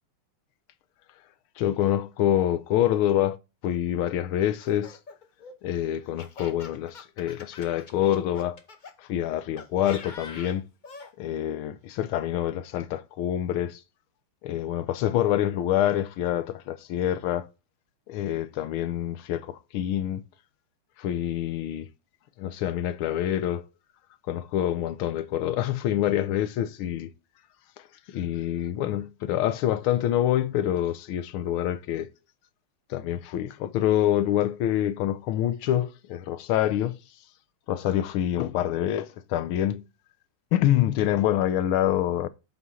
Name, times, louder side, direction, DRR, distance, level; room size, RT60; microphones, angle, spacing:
voice 1, 1.6-3.4 3.6-5.0 5.6-8.6 9.0-10.6 11.2-13.8 14.4-17.5 18.1-20.2 21.0-21.9 22.4-23.6 24.3-27.1 28.1-32.1 32.9-37.0 37.7-39.8 40.5-42.3, left 11 dB, 80° left, 1.6 m, -26 dB
Laughter, 4.6-8.9 9.6-11.1, left 4 dB, 50° left, 0.5 m, -45 dB
8.1 x 3.6 x 5.5 m
omnidirectional pair, 2.3 m